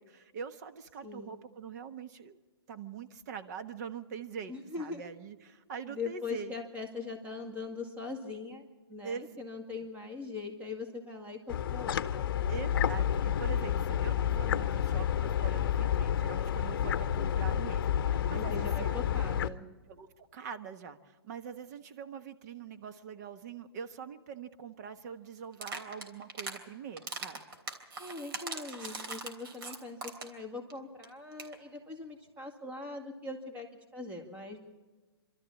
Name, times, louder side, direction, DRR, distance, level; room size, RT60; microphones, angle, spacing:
voice 1, 0.0-2.4 2.7-6.5 9.0-9.4 12.5-19.0 19.9-27.4 28.5-28.6, right 7 dB, 40° right, 9 dB, 1.3 m, -44 dB
voice 2, 1.0-1.3 4.5-5.0 5.9-12.3 18.3-19.7 28.0-33.7 33.9-34.6, left 3 dB, 10° right, 2 dB, 2.1 m, -41 dB
sound 1, 11.5-19.5, left 9 dB, 55° left, 0.8 m, -30 dB
sound 2, 25.5-26.6 27.0-30.4 30.7-30.8 31.0-31.1 31.3-31.6, right 3 dB, 60° right, 3.3 m, -40 dB
26.0 x 13.0 x 8.4 m, 1.3 s
hypercardioid pair, 150°, 14 cm